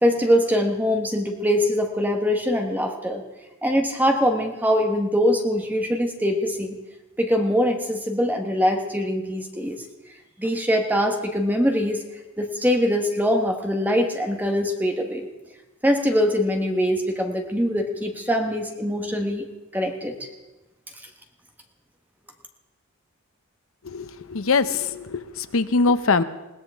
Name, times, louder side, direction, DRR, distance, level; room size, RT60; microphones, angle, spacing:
voice 1, 0.0-3.2 3.6-6.8 7.2-9.8 10.4-12.0 12.4-15.3 15.8-19.5 19.7-20.3, equal, 10° right, 3 dB, 1.2 m, -23 dB
voice 2, 23.9-26.2, left 4 dB, 70° left, 12 dB, 0.7 m, -22 dB
21.0 x 17.5 x 3.6 m, 1.1 s
head